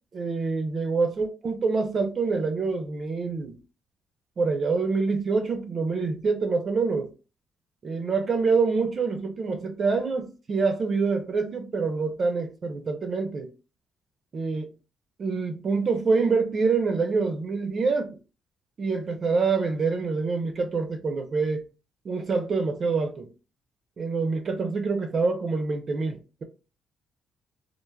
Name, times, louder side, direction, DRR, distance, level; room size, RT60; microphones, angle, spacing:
voice 1, 0.1-3.5 4.4-7.1 7.8-13.5 14.3-14.7 15.2-18.1 18.8-21.7 22.0-23.3 24.0-26.4, right 4 dB, 45° right, 0.5 m, -26 dB
3.1 x 2.0 x 2.2 m
cardioid pair, 90°, 0 cm